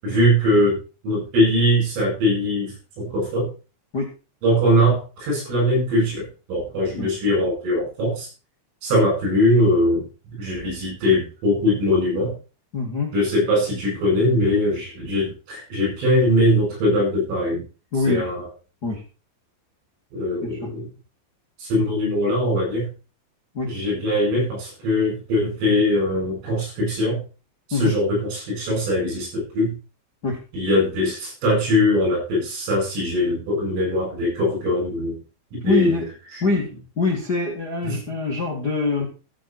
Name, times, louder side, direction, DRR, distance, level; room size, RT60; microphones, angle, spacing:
voice 1, 0.0-0.8 1.0-3.5 4.4-8.3 8.8-12.3 13.1-17.6 18.1-18.5 20.1-20.9 21.6-22.9 23.7-27.2 27.7-29.8 30.5-35.2 35.5-36.0 37.8-38.0, left 1 dB, 85° right, -1 dB, 10.5 m, -21 dB
voice 2, 12.7-13.1 17.9-18.3 18.8-19.0 20.4-20.6 23.5-23.7 27.7-28.0 30.2-30.4 35.6-36.1 36.4-36.7 36.9-39.0, left 3 dB, 45° left, -1 dB, 1.3 m, -24 dB
14.5 x 8.0 x 4.5 m, 0.34 s
omnidirectional pair, 5.7 m